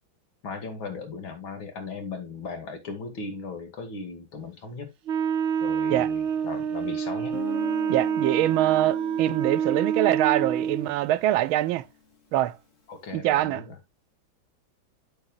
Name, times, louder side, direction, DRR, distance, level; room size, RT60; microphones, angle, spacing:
voice 1, 0.4-4.9 5.6-7.4 12.9-13.8, left 4 dB, 75° left, 3.0 m, -37 dB
Wind instrument woodwind instrument, 5.1-10.9, right 8 dB, 60° right, 0.7 m, -27 dB
Guitar, 7.3-11.9, left 5 dB, 40° left, 2.1 m, -42 dB
voice 2, 7.9-11.8 12.3-12.6 13.1-13.6, right 15 dB, 85° right, 1.4 m, -24 dB
8.7 x 8.1 x 2.4 m
omnidirectional pair, 2.2 m